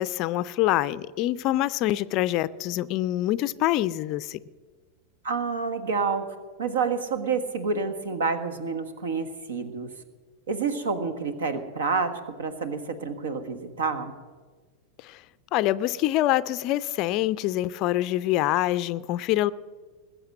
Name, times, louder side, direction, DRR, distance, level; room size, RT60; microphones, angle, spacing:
voice 1, 0.0-4.4 15.0-15.2 15.5-19.5, left 15 dB, 40° left, 17 dB, 0.4 m, -25 dB
voice 2, 5.2-6.2 6.6-9.9 10.5-14.2, right 5 dB, 65° right, 9 dB, 1.5 m, -28 dB
20.5 x 7.8 x 7.7 m, 1.4 s
figure-of-eight pair, 90°, 0 cm